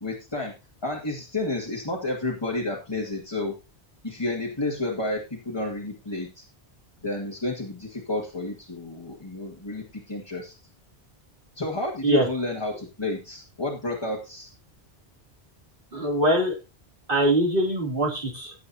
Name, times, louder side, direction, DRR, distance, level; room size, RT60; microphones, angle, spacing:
voice 1, 0.0-0.5 0.8-3.6 4.0-6.4 7.0-10.5 11.6-14.5, left 2 dB, 25° left, -2 dB, 2.0 m, -31 dB
voice 2, 15.9-16.5 17.1-18.5, right 1 dB, 50° right, 0 dB, 3.1 m, -22 dB
16.5 x 8.3 x 2.8 m, 0.27 s
omnidirectional pair, 1.1 m